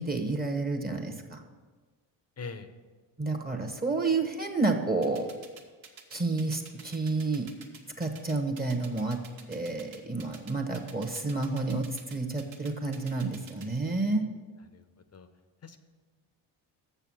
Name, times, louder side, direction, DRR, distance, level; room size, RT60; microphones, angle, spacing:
voice 1, 0.0-1.4 3.2-5.3 6.1-7.5 8.0-9.2 9.5-14.2, right 3 dB, 20° right, 4 dB, 1.1 m, -30 dB
voice 2, 2.4-2.7 14.7-14.8 15.1-15.3 15.6-15.8, left 4 dB, 30° left, 9 dB, 0.8 m, -41 dB
sound 1, 5.0-13.7, right 7 dB, 65° right, 1.4 m, -49 dB
6.9 x 6.8 x 6.2 m, 1.4 s
supercardioid pair, 70°, 50 cm